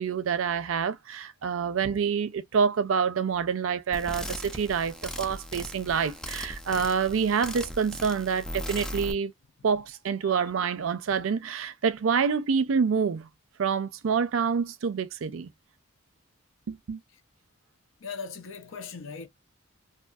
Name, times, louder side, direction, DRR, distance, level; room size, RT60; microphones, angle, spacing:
voice 1, 0.0-9.3 9.6-13.3 13.6-15.5 16.7-17.0, right 6 dB, 75° right, 0.4 m, -27 dB
sound 1, 3.9-9.1, equal, 5° left, 0.4 m, -38 dB
voice 2, 18.0-19.3, left 5 dB, 70° left, 0.6 m, -39 dB
2.6 x 2.5 x 2.3 m
head